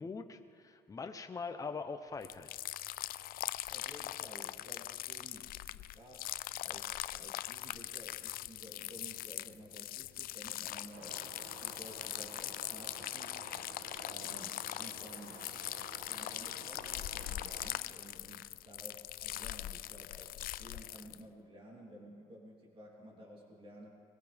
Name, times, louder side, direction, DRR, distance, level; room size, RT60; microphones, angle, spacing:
voice 1, 0.0-2.5, left 4 dB, 20° left, 6 dB, 0.8 m, -42 dB
sound 1, 2.2-21.2, left 14 dB, 60° left, 0.4 m, -41 dB
voice 2, 3.7-13.3 14.0-15.4 16.0-23.9, equal, 30° right, -2 dB, 3.2 m, -54 dB
sound 2, 10.9-17.8, right 4 dB, 70° right, 1.6 m, -52 dB
24.0 x 16.5 x 3.5 m, 2.2 s
cardioid pair, 110°, 17 cm